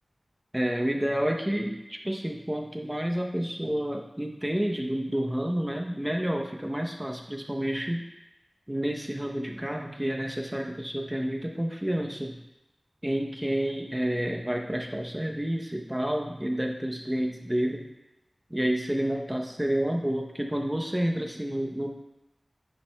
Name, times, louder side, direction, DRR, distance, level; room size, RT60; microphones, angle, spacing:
voice 1, 0.5-8.0 8.7-12.4 13.0-17.8 18.5-21.9, right 1 dB, 15° right, 2 dB, 0.8 m, -29 dB
10.0 x 5.9 x 2.3 m, 0.92 s
wide cardioid pair, 70°, 0 cm